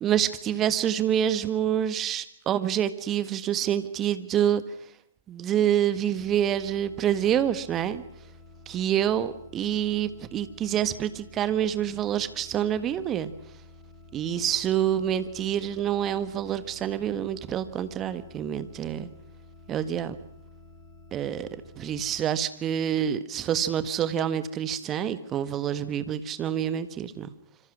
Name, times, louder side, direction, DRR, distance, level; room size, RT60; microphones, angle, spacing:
voice 1, 0.0-4.6 5.3-8.0 8.7-13.3 14.1-19.1 19.7-20.2 21.1-21.5 21.8-27.3, right 10 dB, 20° right, 13 dB, 1.6 m, -27 dB
sound 1, 6.2-22.2, left 2 dB, 10° left, 5.2 m, -51 dB
26.0 x 25.5 x 6.2 m, 0.69 s
figure-of-eight pair, 120°, 0 cm